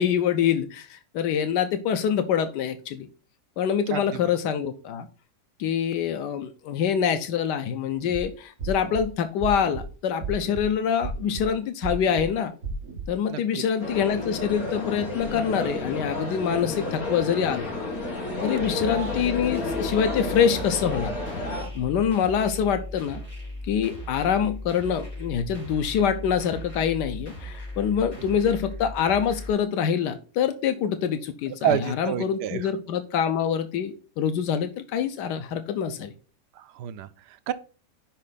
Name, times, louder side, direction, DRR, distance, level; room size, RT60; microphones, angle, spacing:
voice 1, 0.0-3.1 3.6-5.1 5.6-12.5 13.1-17.7 18.4-21.1 21.7-23.2 23.7-36.1, left 8 dB, 85° left, 1.3 m, -25 dB
voice 2, 3.9-4.3 13.3-13.6 18.6-18.8 31.6-32.6 36.6-37.5, right 10 dB, 80° right, 1.2 m, -29 dB
sound 1, 8.0-8.2 8.6-9.0 9.4-9.8 10.2-10.6 11.0-11.4 11.8-12.2 12.6-13.1, right 5 dB, 50° right, 2.1 m, -34 dB
sound 2, 13.8-21.7, left 2 dB, 60° left, 2.3 m, -31 dB
sound 3, 18.6-29.5, left 1 dB, 20° left, 3.6 m, -38 dB
6.4 x 5.3 x 4.0 m
omnidirectional pair, 1.8 m